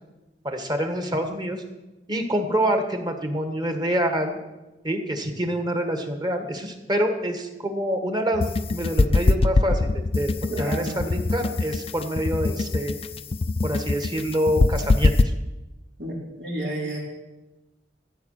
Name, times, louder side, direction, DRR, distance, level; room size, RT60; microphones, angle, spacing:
voice 1, 0.4-1.6 2.1-4.4 4.8-12.9 13.6-15.3, equal, 25° right, 6 dB, 1.5 m, -26 dB
sound 1, 8.3-15.2, left 2 dB, 35° left, 0.4 m, -22 dB
voice 2, 10.5-11.0 16.0-17.0, right 2 dB, 80° right, -2 dB, 3.8 m, -31 dB
14.5 x 8.2 x 6.6 m, 1.0 s
head